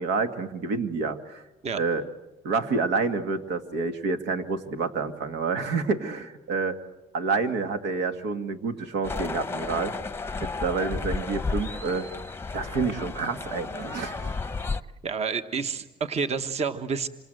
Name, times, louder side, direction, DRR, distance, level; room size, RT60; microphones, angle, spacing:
voice 1, 0.0-1.4 1.7-2.0 2.4-6.8 7.1-9.9 10.4-12.1 12.5-14.3, right 4 dB, 85° right, 8 dB, 2.1 m, -28 dB
sound 1, 9.0-14.8, left 4 dB, 15° left, 0.8 m, -33 dB
voice 2, 15.0-17.1, right 5 dB, 40° right, 9 dB, 1.3 m, -29 dB
27.0 x 26.0 x 7.9 m, 1.0 s
cardioid pair, 110°, 17 cm